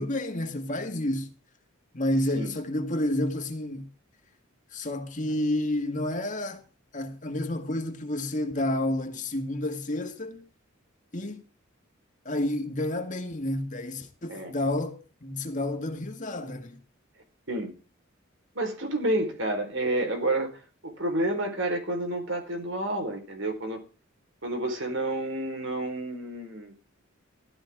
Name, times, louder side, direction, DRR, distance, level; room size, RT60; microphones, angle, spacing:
voice 1, 0.0-1.3 1.9-3.9 4.7-6.6 6.9-10.4 11.1-11.4 12.3-16.8, left 1 dB, 40° left, 2.1 m, -30 dB
voice 2, 18.5-20.5 20.8-23.8 24.4-26.7, right 1 dB, 65° right, 4.4 m, -29 dB
16.5 x 13.0 x 3.7 m
head